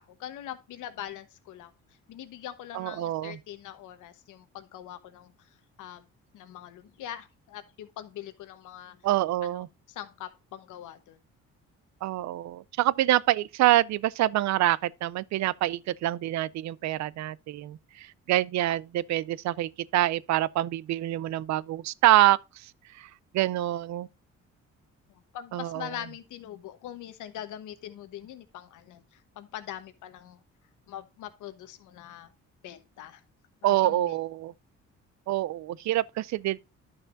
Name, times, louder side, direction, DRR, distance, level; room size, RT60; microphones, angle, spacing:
voice 1, 0.0-1.7 2.1-5.5 5.8-6.0 6.3-9.0 9.4-11.2 25.1-30.4 30.9-32.3 32.6-33.2 33.6-34.2, left 11 dB, 85° left, 1.1 m, -42 dB
voice 2, 2.7-3.4 9.0-9.7 12.0-22.4 23.0-23.1 23.3-24.1 25.5-25.9 33.6-34.5 35.3-36.6, right 14 dB, 65° right, 0.4 m, -26 dB
11.0 x 6.5 x 2.5 m
cardioid pair, 90°, 30 cm